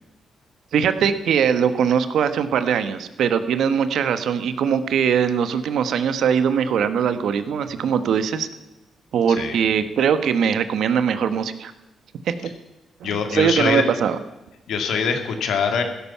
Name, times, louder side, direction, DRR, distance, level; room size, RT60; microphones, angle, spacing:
voice 1, 0.7-8.5 9.1-11.7 12.2-12.5 13.0-14.2, right 7 dB, 80° right, 11 dB, 1.2 m, -21 dB
voice 2, 13.0-13.8 14.7-15.8, left 6 dB, 85° left, 6 dB, 2.3 m, -23 dB
16.0 x 13.0 x 5.7 m, 1.0 s
cardioid pair, 125°, 0 cm